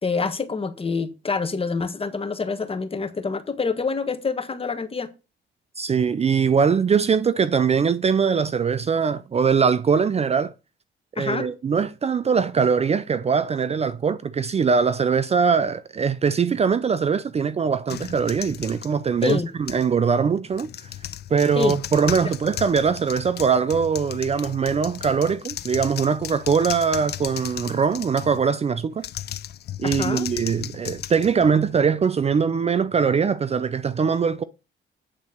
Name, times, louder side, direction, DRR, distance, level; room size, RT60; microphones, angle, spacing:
voice 1, 0.0-5.1 11.2-11.5 19.2-19.5 21.5-21.8 22.2-22.3 29.8-30.3, left 4 dB, 30° left, 1.3 m, -26 dB
voice 2, 5.8-10.5 11.1-20.7 21.3-29.0 29.8-34.4, right 6 dB, 30° right, 0.5 m, -22 dB
sound 1, 17.9-19.9 20.5-28.4 29.0-31.9, left 11 dB, 55° left, 0.5 m, -35 dB
8.7 x 4.0 x 6.4 m
cardioid pair, 90°, 20 cm